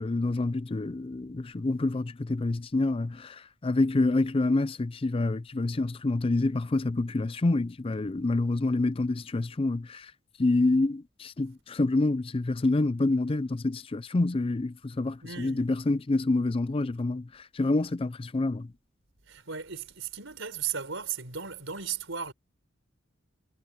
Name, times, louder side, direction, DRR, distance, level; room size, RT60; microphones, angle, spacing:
voice 1, 0.0-10.1 10.4-17.3 17.5-18.7, left 2 dB, 30° left, 0.5 m, -27 dB
voice 2, 15.2-15.7 19.3-22.3, right 7 dB, 80° right, 4.4 m, -36 dB
head